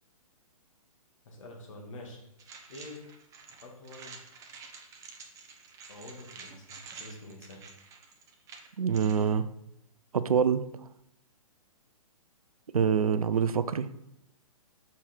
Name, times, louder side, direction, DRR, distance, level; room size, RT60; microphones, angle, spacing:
voice 1, 1.2-2.2 2.7-3.0 3.6-4.2 5.9-7.6, left 2 dB, 60° left, 0 dB, 2.1 m, -46 dB
sound 1, 2.4-9.3, right 5 dB, 15° right, 0.7 m, -49 dB
voice 2, 8.8-9.5 10.1-10.6 12.7-13.9, right 7 dB, 70° right, 14 dB, 0.5 m, -25 dB
6.9 x 4.9 x 4.4 m, 0.80 s
figure-of-eight pair, 125°, 19 cm